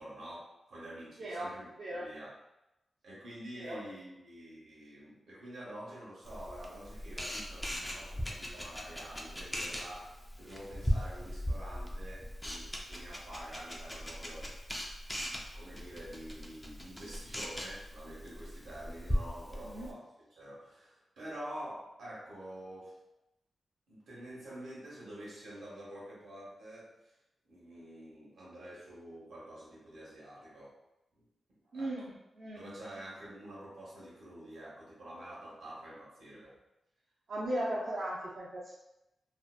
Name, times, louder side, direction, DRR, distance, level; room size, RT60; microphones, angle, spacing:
voice 1, 0.0-2.3 3.0-14.7 15.5-23.0 23.9-27.1 27.5-30.7 31.7-31.9 32.5-36.6, right 1 dB, 85° right, -6 dB, 1.0 m, -47 dB
voice 2, 1.2-2.1 3.6-3.8 19.6-19.9 31.7-32.7 37.3-38.7, right 1 dB, 60° right, -7 dB, 0.4 m, -37 dB
Camera, 6.2-19.9, equal, 10° left, 0.3 m, -39 dB
2.6 x 2.1 x 2.3 m, 0.93 s
wide cardioid pair, 135°, 0 cm